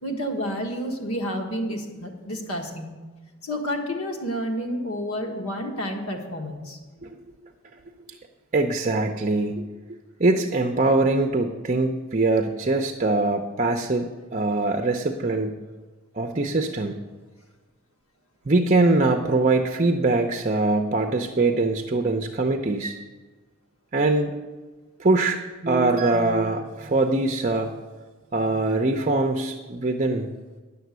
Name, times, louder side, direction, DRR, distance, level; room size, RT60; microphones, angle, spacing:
voice 1, 0.0-3.0 3.4-6.8, equal, 85° left, 2 dB, 1.6 m, -30 dB
voice 2, 8.5-9.6 10.2-15.6 16.1-17.0 18.5-23.0 23.9-24.3 25.0-27.7 28.3-30.3, right 2 dB, 35° right, 5 dB, 0.6 m, -23 dB
10.5 x 6.8 x 8.0 m, 1.3 s
head